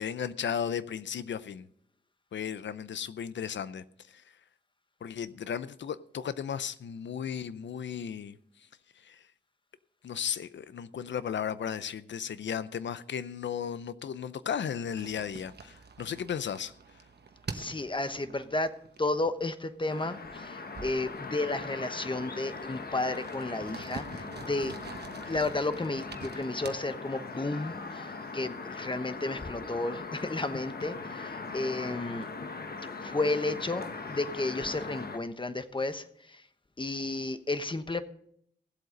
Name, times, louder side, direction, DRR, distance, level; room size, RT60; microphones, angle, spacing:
voice 1, 0.0-1.7 2.3-4.2 5.0-8.4 9.0-9.2 10.0-16.7, left 8 dB, 85° left, 0.6 m, -35 dB
sound 1, 15.0-19.4 19.7-20.0 20.2-21.5 22.2-22.3 22.6-26.8, right 5 dB, 65° right, 1.2 m, -46 dB
voice 2, 17.5-18.7 19.0-24.7 25.2-32.3 33.0-36.4 36.8-38.0, left 2 dB, 25° left, 1.1 m, -32 dB
sound 2, 19.9-35.2, left 4 dB, 60° left, 1.3 m, -40 dB
16.0 x 7.9 x 5.2 m
cardioid pair, 60°, 18 cm